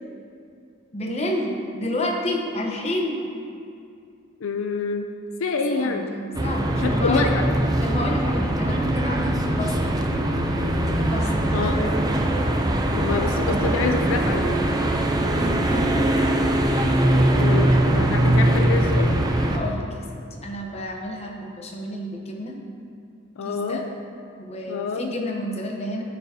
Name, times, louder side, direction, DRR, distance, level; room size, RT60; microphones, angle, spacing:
voice 1, 0.9-3.2 5.7-7.3 7.8-10.0 11.1-12.0 15.4-16.1 19.5-22.6 23.4-23.9 24.4-26.0, left 1 dB, 30° left, 0 dB, 0.9 m, -30 dB
voice 2, 4.4-5.1 5.4-6.1 6.7-7.5 11.5-12.0 13.0-14.5 17.4-19.1 23.4-23.8 24.7-25.1, left 4 dB, 80° left, 4 dB, 0.5 m, -26 dB
sound 1, 6.3-19.6, right 1 dB, 20° right, 0.5 m, -21 dB
13.0 x 6.0 x 2.8 m, 2.4 s
head